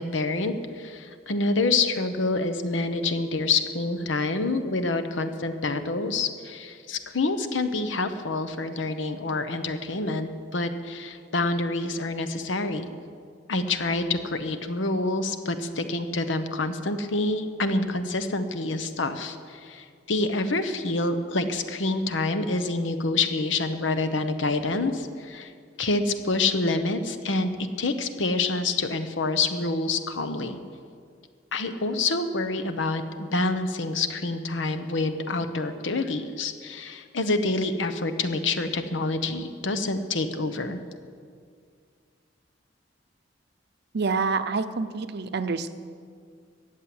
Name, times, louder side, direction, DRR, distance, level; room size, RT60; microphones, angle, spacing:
voice 1, 0.0-12.9 13.5-25.5 25.8-27.5 27.8-30.6 31.5-40.8, left 3 dB, 90° left, 9 dB, 1.0 m, -27 dB
voice 2, 43.9-45.7, right 4 dB, 60° right, 11 dB, 0.7 m, -27 dB
14.5 x 7.5 x 9.5 m, 2.2 s
head